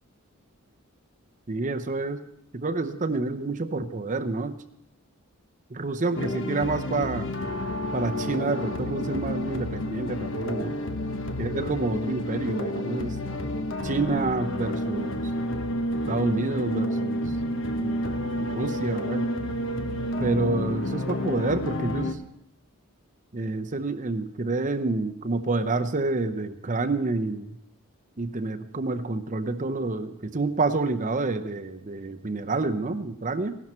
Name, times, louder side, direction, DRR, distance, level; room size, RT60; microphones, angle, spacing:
voice 1, 1.5-2.2 2.5-4.6 5.7-7.3 7.9-10.7 11.4-13.2 13.8-15.3 16.1-17.4 17.8-19.3 20.2-22.2 23.3-27.6 28.2-33.6, right 3 dB, 35° right, 8 dB, 0.7 m, -28 dB
sound 1, 6.2-22.1, left 1 dB, 60° left, 1.1 m, -30 dB
17.0 x 12.0 x 4.4 m, 0.80 s
head